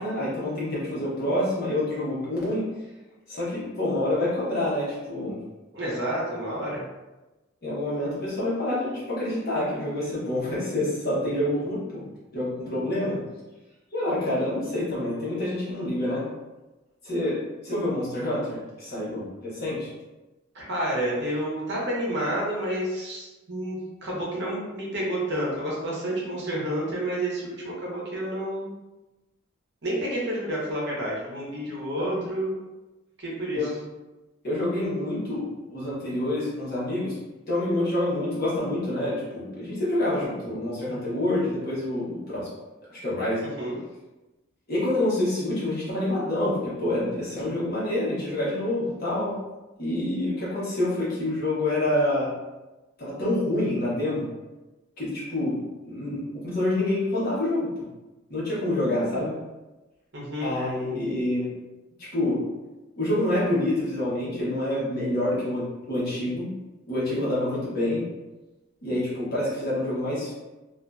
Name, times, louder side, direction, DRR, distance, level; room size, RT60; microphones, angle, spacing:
voice 1, 0.0-2.7 3.3-5.4 7.6-12.0 12.3-13.2 13.9-16.3 17.0-19.9 32.0-32.2 33.5-33.8 34.4-37.2 37.5-42.5 42.9-43.4 44.7-49.4 49.8-52.3 53.0-54.3 55.0-55.6 55.8-57.7 58.3-59.3 60.4-61.5 62.0-62.4 63.0-66.5 66.9-68.0 68.8-70.3, left 1 dB, 50° left, -8 dB, 1.0 m, -27 dB
voice 2, 5.7-6.8 20.5-28.7 29.8-32.5 33.2-33.7 43.6-43.8 58.5-59.3 60.1-60.5, right 1 dB, 55° right, -5 dB, 0.8 m, -30 dB
2.6 x 2.5 x 2.2 m, 1.1 s
head